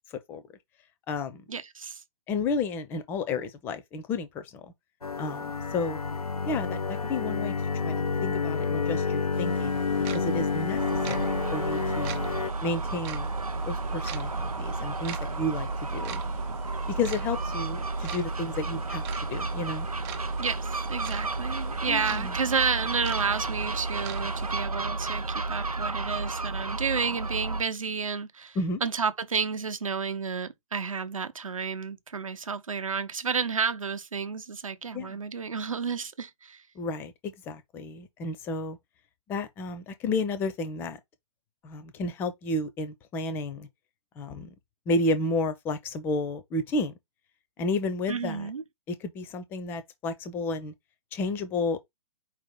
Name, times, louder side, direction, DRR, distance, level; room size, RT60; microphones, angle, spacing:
voice 1, 0.1-0.4 1.1-1.4 2.3-4.7 5.2-6.0 6.5-7.5 7.8-10.8 11.1-12.2 12.6-13.3 13.7-16.2 16.9-19.0 19.3-19.9 21.9-22.3 28.6-28.8 34.9-35.2 36.8-38.8 39.3-41.0 41.6-43.7 44.2-44.5 44.9-46.9 47.6-48.5 48.9-50.7 51.1-51.8, left 2 dB, 10° left, 0.4 m, -32 dB
voice 2, 1.5-2.0 20.4-36.6 48.1-48.6, right 5 dB, 65° right, 0.9 m, -31 dB
sound 1, 5.0-12.5, left 5 dB, 85° left, 0.5 m, -29 dB
sound 2, 9.3-24.5, right 9 dB, 25° right, 0.8 m, -44 dB
Gull seagull, 10.8-27.6, right 3 dB, 85° right, 0.6 m, -32 dB
4.5 x 2.8 x 3.6 m
figure-of-eight pair, 125°, 18 cm